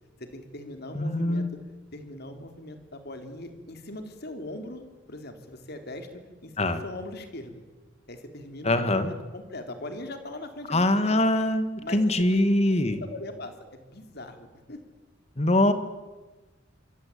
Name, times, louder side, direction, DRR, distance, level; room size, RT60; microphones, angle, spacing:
voice 1, 0.2-1.5 1.9-6.1 6.4-7.6 8.1-11.2 11.8-12.0 12.3-12.4 12.7-14.8, left 1 dB, 55° left, 7 dB, 3.6 m, -40 dB
voice 2, 0.9-1.5 6.6-6.8 8.6-9.1 10.7-11.7 11.9-13.0 15.4-15.7, left 1 dB, 30° left, 10 dB, 2.0 m, -23 dB
26.0 x 24.5 x 8.7 m, 1.2 s
head